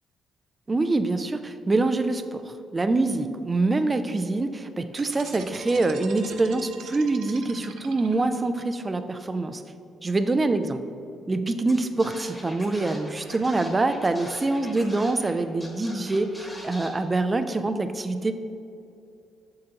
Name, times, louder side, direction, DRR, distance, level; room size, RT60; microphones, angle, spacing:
voice 1, 0.7-9.6 10.0-10.8 11.3-18.3, right 2 dB, 25° right, 9 dB, 0.4 m, -25 dB
sound 1, 4.9-8.5, right 6 dB, 85° right, 0.6 m, -43 dB
Scratching (performance technique), 11.7-11.8 12.0-15.3 15.6-16.9, left 1 dB, 10° left, 1.5 m, -42 dB
7.4 x 6.5 x 2.9 m, 2.5 s
cardioid pair, 90°, 0 cm